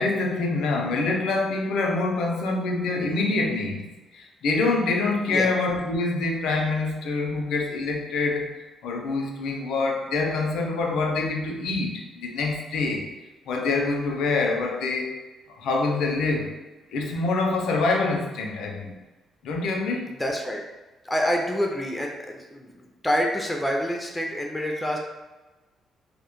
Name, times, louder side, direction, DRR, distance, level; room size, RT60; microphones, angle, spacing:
voice 1, 0.0-3.9 4.1-8.5 8.8-13.1 13.5-15.2 15.6-16.5 16.9-19.0 19.4-20.1, left 3 dB, 80° left, 1 dB, 0.4 m, -25 dB
voice 2, 20.2-20.6 21.0-25.0, equal, 10° left, 1 dB, 0.3 m, -27 dB
2.1 x 2.1 x 2.9 m, 1.1 s
cardioid pair, 90°, 0 cm